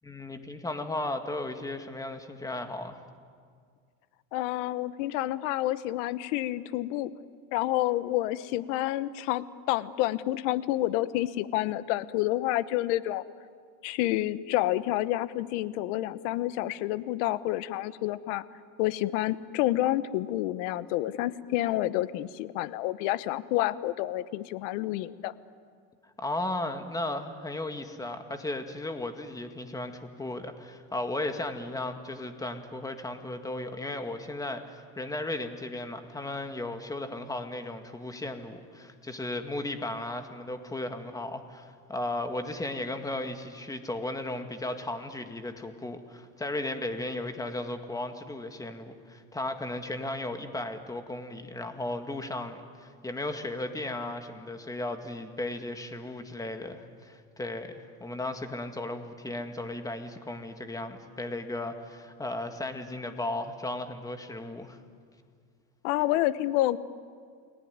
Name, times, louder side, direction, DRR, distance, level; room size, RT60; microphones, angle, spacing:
voice 1, 0.0-3.0 26.2-64.8, left 2 dB, 10° left, 6 dB, 2.0 m, -35 dB
voice 2, 4.3-7.1 7.5-13.2 13.8-18.4 18.8-25.3 65.8-66.8, left 15 dB, 80° left, 15 dB, 1.1 m, -29 dB
29.5 x 19.5 x 9.5 m, 2.1 s
supercardioid pair, 135°, 36 cm